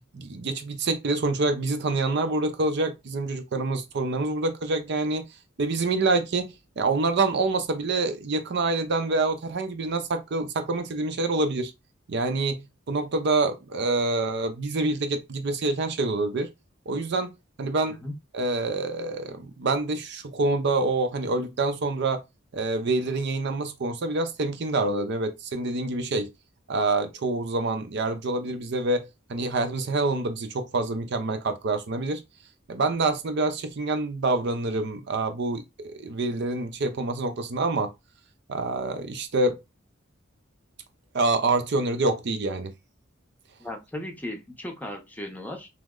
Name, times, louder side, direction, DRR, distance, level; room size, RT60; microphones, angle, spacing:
voice 1, 0.1-5.3 5.6-11.7 12.1-16.5 16.9-18.0 18.3-22.2 22.5-26.3 26.7-32.2 32.7-37.9 38.5-39.6 41.1-42.7, right 3 dB, 60° right, 0.5 m, -26 dB
voice 2, 43.6-45.7, left 1 dB, 10° left, 0.6 m, -36 dB
3.1 x 2.0 x 3.6 m
head